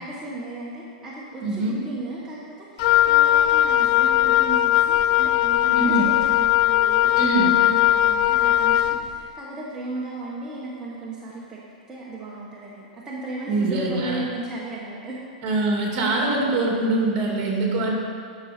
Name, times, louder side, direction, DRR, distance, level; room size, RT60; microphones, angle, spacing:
voice 1, 0.0-11.6 11.9-15.2, right 2 dB, 15° right, -6 dB, 1.2 m, -35 dB
voice 2, 1.4-1.8 5.7-6.1 7.2-7.5 13.5-14.2 15.4-17.9, right 2 dB, 40° right, -1 dB, 2.2 m, -23 dB
Wind instrument woodwind instrument, 2.8-9.0, left 13 dB, 50° left, 0.3 m, -19 dB
10.5 x 6.3 x 4.3 m, 2.2 s
hypercardioid pair, 135°, 4 cm